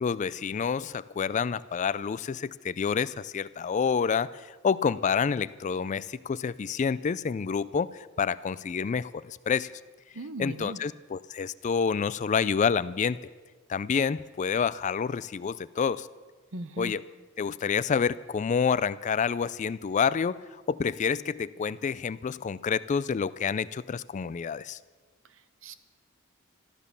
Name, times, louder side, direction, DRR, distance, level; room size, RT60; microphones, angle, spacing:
voice 1, 0.0-9.7 10.4-13.2 13.7-16.1 16.8-17.0 17.4-24.8, left 6 dB, 35° left, 17 dB, 0.3 m, -28 dB
voice 2, 10.1-10.8 16.5-16.9 25.3-25.7, right 1 dB, 65° right, 12 dB, 0.9 m, -39 dB
13.5 x 12.5 x 6.8 m, 1.4 s
head